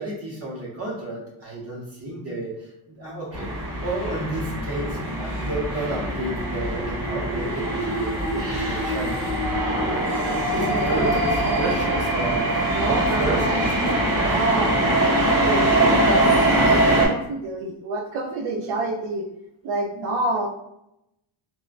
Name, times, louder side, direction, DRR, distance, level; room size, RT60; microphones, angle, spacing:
voice 1, 0.0-3.5 3.8-9.3 10.5-13.7, right 1 dB, 30° right, -3 dB, 0.7 m, -31 dB
sound 1, 3.3-17.1, right 1 dB, 55° right, 1.1 m, -22 dB
voice 2, 10.6-11.7 12.7-13.7 14.2-19.3 19.6-20.5, right 2 dB, 80° right, 2 dB, 0.5 m, -28 dB
3.5 x 2.1 x 2.4 m, 0.82 s
cardioid pair, 180°, 48 cm